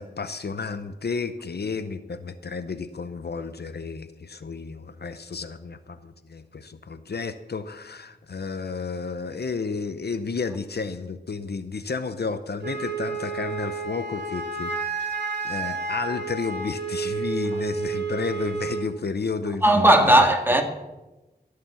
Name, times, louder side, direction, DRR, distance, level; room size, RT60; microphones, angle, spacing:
voice 1, 0.0-15.2 15.4-20.3, left 4 dB, 75° left, 0.7 m, -32 dB
Wind instrument woodwind instrument, 12.6-18.9, right 4 dB, 90° right, 2.2 m, -30 dB
voice 2, 19.6-20.6, right 1 dB, 10° right, 1.8 m, -16 dB
15.0 x 6.8 x 7.0 m
wide cardioid pair, 70°, 17 cm